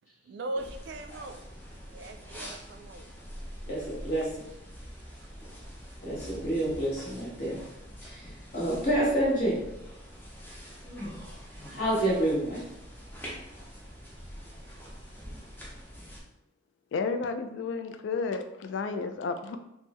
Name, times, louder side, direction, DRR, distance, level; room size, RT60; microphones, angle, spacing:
voice 1, 0.3-1.4 1.9-3.1, right 2 dB, 60° right, 6 dB, 0.3 m, -39 dB
sound 1, 0.6-16.2, equal, 10° left, 0.5 m, -45 dB
voice 2, 3.7-4.3 6.0-7.6 8.0-8.3 8.5-9.6 11.7-12.6, right 1 dB, 45° left, -6 dB, 1.2 m, -28 dB
voice 3, 16.9-19.6, left 4 dB, 70° left, 8 dB, 0.3 m, -32 dB
3.5 x 2.0 x 3.0 m, 0.86 s
head